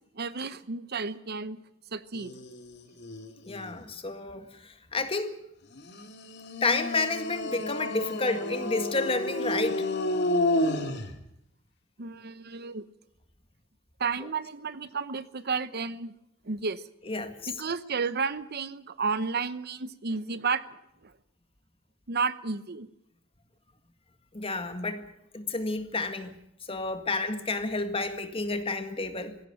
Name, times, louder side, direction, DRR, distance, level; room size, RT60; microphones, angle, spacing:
voice 1, 0.2-1.6 1.9-2.3 12.0-12.8 14.0-16.1 16.4-16.8 17.5-21.1 22.1-22.9, right 5 dB, 50° right, 0.9 m, -32 dB
sound 1, 2.1-3.8 5.7-11.2, left 1 dB, 55° left, 2.6 m, -31 dB
voice 2, 3.5-5.4 6.6-9.9 17.1-17.5 24.3-25.1 25.3-26.3 26.7-29.4, left 3 dB, 25° left, 1.8 m, -30 dB
19.5 x 16.5 x 9.0 m
head